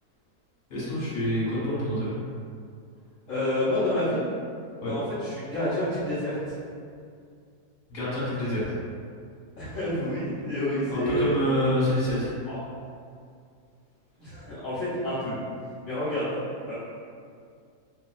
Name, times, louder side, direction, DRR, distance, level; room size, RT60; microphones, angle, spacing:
voice 1, 0.7-2.2 4.8-4.9 7.9-8.6 10.9-12.3, equal, 40° left, -9 dB, 1.3 m, -27 dB
voice 2, 3.3-4.2 4.8-6.5 9.6-11.3 12.5-12.6 14.2-15.4 15.8-16.3 16.7-16.8, left 1 dB, 60° left, -12 dB, 1.1 m, -28 dB
2.9 x 2.9 x 2.3 m, 2.3 s
omnidirectional pair, 1.7 m